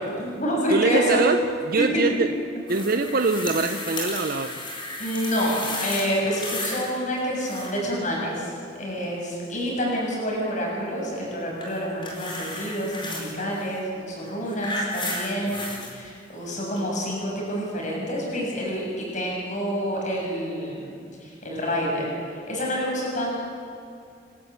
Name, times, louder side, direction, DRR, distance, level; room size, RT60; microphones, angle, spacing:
voice 1, 0.0-1.4 5.0-8.5 8.8-15.6 15.9-22.1 22.5-23.3, equal, 40° left, -2 dB, 6.9 m, -28 dB
voice 2, 0.7-1.4 1.7-2.3 2.7-4.6 15.4-15.7, right 3 dB, 50° right, 7 dB, 0.8 m, -24 dB
sound 1, 2.7-6.9 7.2-7.9 11.6-13.3 14.2-15.9 16.8-16.9, left 2 dB, 25° left, 4.6 m, -33 dB
29.0 x 12.5 x 8.5 m, 2.5 s
head